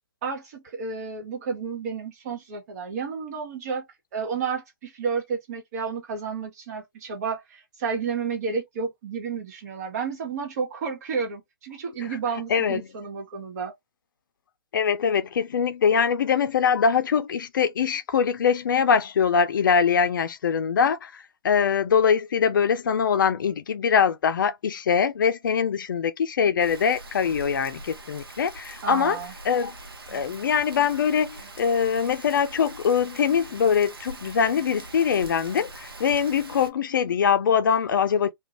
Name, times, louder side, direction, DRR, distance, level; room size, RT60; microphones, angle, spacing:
voice 1, 0.2-3.8 4.1-13.7 28.8-29.3, right 5 dB, 45° right, 1.2 m, -31 dB
voice 2, 12.5-12.9 14.7-29.2 29.4-29.7 30.1-38.3, left 7 dB, 60° left, 0.5 m, -23 dB
Rain, 26.6-36.7, right 2 dB, 75° right, 0.8 m, -42 dB
2.5 x 2.3 x 3.0 m
figure-of-eight pair, 125°, 12 cm